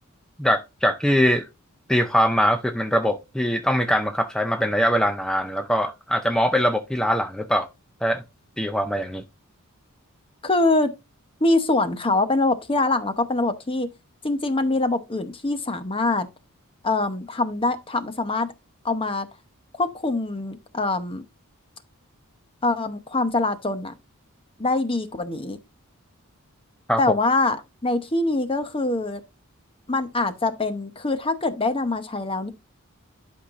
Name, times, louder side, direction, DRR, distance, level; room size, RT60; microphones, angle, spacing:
voice 1, 0.4-1.5 1.9-7.7 8.0-8.2 8.6-9.2 26.9-27.0, equal, 5° left, 0.5 m, -22 dB
voice 2, 10.4-10.9 11.4-13.9 14.2-16.3 16.8-18.5 18.8-19.3 19.8-21.2 22.6-23.9 24.6-25.6 27.0-27.6 27.8-29.2 29.9-32.5, left 2 dB, 25° left, 0.9 m, -24 dB
11.5 x 5.6 x 2.5 m
head